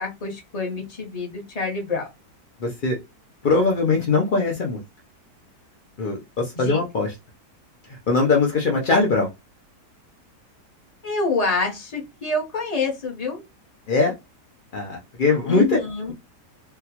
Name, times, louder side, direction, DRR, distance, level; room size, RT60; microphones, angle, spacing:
voice 1, 0.0-2.1 6.6-6.8 11.0-13.4 15.4-16.1, left 3 dB, 30° left, 0.8 m, -27 dB
voice 2, 2.6-3.0 3.4-4.8 6.0-7.1 8.1-9.3 13.9-14.1 14.7-15.8, left 3 dB, 65° left, 0.5 m, -21 dB
3.7 x 2.3 x 2.8 m
omnidirectional pair, 1.8 m